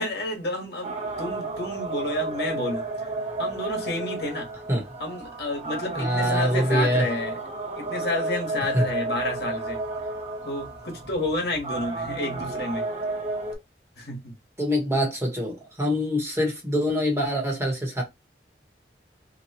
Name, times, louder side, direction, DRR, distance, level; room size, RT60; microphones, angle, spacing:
voice 1, 0.0-2.8 3.4-4.5 5.0-7.4 7.7-9.8 10.4-12.8 14.0-14.3, left 1 dB, 65° left, 1.2 m, -30 dB
sound 1, 0.8-13.6, right 2 dB, 35° right, 1.0 m, -32 dB
voice 2, 5.9-7.1 8.6-8.9 14.6-18.0, equal, 15° right, 1.0 m, -24 dB
2.9 x 2.2 x 4.1 m
head